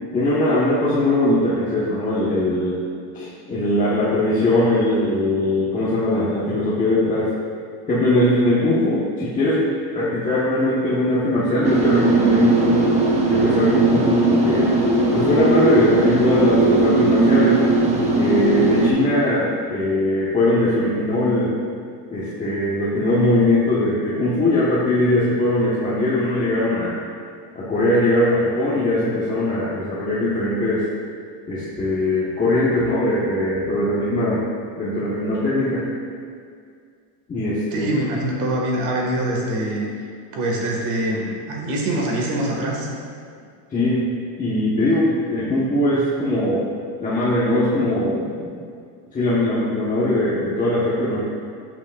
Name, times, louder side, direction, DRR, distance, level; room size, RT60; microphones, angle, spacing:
voice 1, 0.1-2.8 3.1-7.3 7.9-9.6 9.9-12.8 13.3-14.7 15.1-17.6 18.1-21.5 22.1-26.9 27.5-30.9 31.5-34.4 34.8-35.8 37.3-37.9 43.7-44.0 44.4-46.7 47.0-48.6 49.1-51.2, left 1 dB, 20° left, -9 dB, 1.2 m, -20 dB
sound 1, 11.6-18.9, right 2 dB, 15° right, 1.0 m, -18 dB
voice 2, 37.7-39.9 40.3-42.9, right 1 dB, 40° right, -2 dB, 1.8 m, -24 dB
12.5 x 6.1 x 2.4 m, 2.2 s
supercardioid pair, 145°, 44 cm